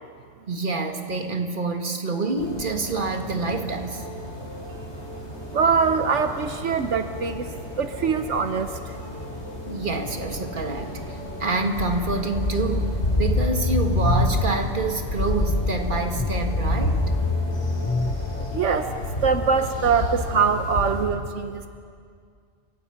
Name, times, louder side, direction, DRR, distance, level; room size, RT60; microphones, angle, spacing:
voice 1, 0.5-4.0 9.7-17.0, right 3 dB, 45° right, 4 dB, 2.0 m, -27 dB
sound 1, 2.4-21.0, left 1 dB, 65° left, 4.8 m, -30 dB
voice 2, 5.5-7.5 7.8-8.9 18.3-18.9 19.2-21.7, right 6 dB, 80° right, 8 dB, 1.3 m, -23 dB
sound 2, 5.9-20.4, equal, 85° left, 6.0 m, -42 dB
sound 3, 12.4-14.3 16.2-18.2 20.0-20.1, left 3 dB, 20° left, 0.6 m, -27 dB
29.0 x 25.0 x 5.8 m, 2.2 s
omnidirectional pair, 1.2 m